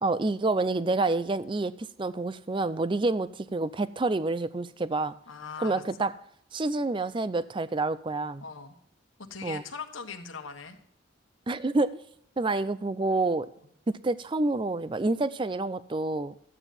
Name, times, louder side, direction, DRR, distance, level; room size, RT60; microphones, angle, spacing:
voice 1, 0.0-5.2 5.6-6.1 6.5-8.4 9.4-9.6 11.5-12.0 12.4-13.5 13.9-16.3, right 2 dB, 25° right, 0.4 m, -28 dB
voice 2, 5.3-6.1 8.4-8.7 9.3-10.8, left 5 dB, 80° left, 1.4 m, -40 dB
13.0 x 9.0 x 4.2 m
head